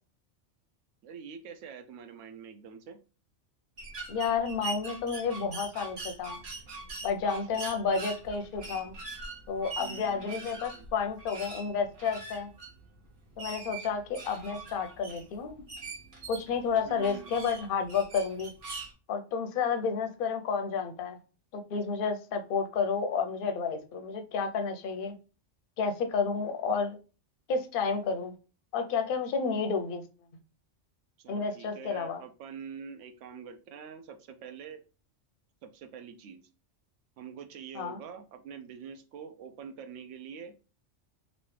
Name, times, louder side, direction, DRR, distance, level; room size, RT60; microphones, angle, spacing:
voice 1, 1.0-3.0 7.5-7.7 9.8-10.9 16.8-17.3 26.0-26.1 26.4-26.5 31.2-34.8 35.6-36.4 37.2-40.5, right 7 dB, 80° right, 8 dB, 0.9 m, -45 dB
sound 1, 3.8-18.9, right 3 dB, 45° right, 1.1 m, -43 dB
voice 2, 4.1-6.4 7.0-8.9 9.5-12.5 13.4-15.5 16.3-18.5 19.1-21.2 21.5-25.1 25.8-27.0 27.5-28.3 28.7-30.0 31.3-32.2 37.7-38.0, left 5 dB, 60° left, 6 dB, 0.6 m, -31 dB
3.1 x 2.7 x 3.1 m, 0.34 s
omnidirectional pair, 1.3 m